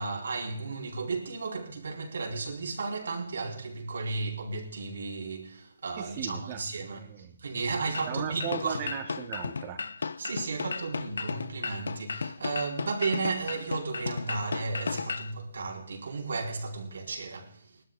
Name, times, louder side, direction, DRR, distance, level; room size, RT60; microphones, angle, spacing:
voice 1, 0.0-7.0 7.4-8.9 10.2-17.8, right 4 dB, 75° right, 4.2 m, -34 dB
voice 2, 6.0-7.4 8.1-9.8, right 8 dB, 25° right, 2.3 m, -37 dB
sound 1, 7.9-15.3, left 4 dB, 85° left, 0.8 m, -35 dB
20.5 x 13.0 x 3.7 m
hypercardioid pair, 165°, 0 cm